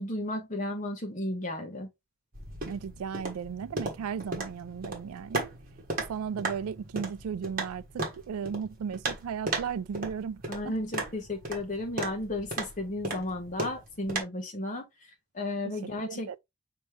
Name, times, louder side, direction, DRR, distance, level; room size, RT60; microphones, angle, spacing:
voice 1, 0.0-1.9 10.5-14.8 15.3-16.4, left 1 dB, 35° left, 1.2 m, -34 dB
sound 1, 2.3-14.2, right 2 dB, 40° right, 1.3 m, -37 dB
voice 2, 2.6-5.5 6.1-11.1 16.1-16.4, right 7 dB, 85° right, 0.3 m, -36 dB
5.4 x 2.9 x 3.2 m
head